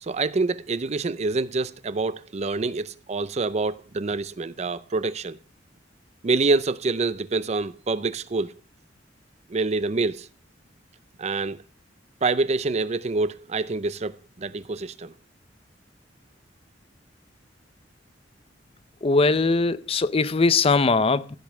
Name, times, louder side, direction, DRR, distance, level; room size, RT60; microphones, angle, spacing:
voice 1, 0.0-5.4 6.2-8.5 9.5-10.3 11.2-11.6 12.2-15.1, right 3 dB, 35° right, 0.5 m, -26 dB
voice 2, 19.0-21.4, left 3 dB, 30° left, 0.5 m, -21 dB
15.0 x 5.4 x 6.1 m
head